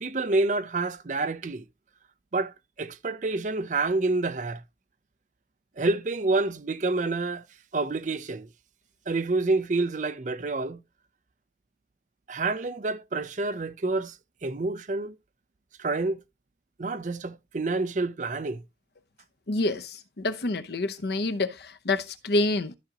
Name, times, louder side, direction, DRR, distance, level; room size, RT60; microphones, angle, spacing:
voice 1, 0.0-1.6 2.3-4.6 5.8-7.4 7.7-8.5 9.1-10.8 12.3-14.2 14.4-15.1 15.8-16.2 16.8-18.6, right 3 dB, 45° right, 0.6 m, -28 dB
voice 2, 19.5-22.8, left 2 dB, 65° left, 0.8 m, -27 dB
13.5 x 5.0 x 2.9 m
head